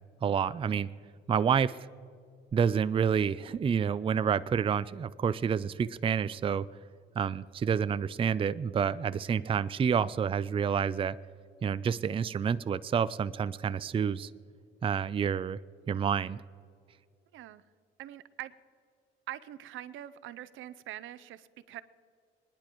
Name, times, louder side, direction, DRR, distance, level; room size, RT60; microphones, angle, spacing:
voice 1, 0.2-0.9 1.3-1.8 2.5-6.7 7.2-11.2 11.6-14.3 14.8-15.6 15.9-16.4, right 7 dB, 25° right, 16 dB, 0.4 m, -28 dB
voice 2, 18.0-18.5 19.3-21.8, right 13 dB, 80° right, 15 dB, 0.6 m, -43 dB
25.5 x 10.5 x 3.0 m, 2.3 s
cardioid pair, 90°, 20 cm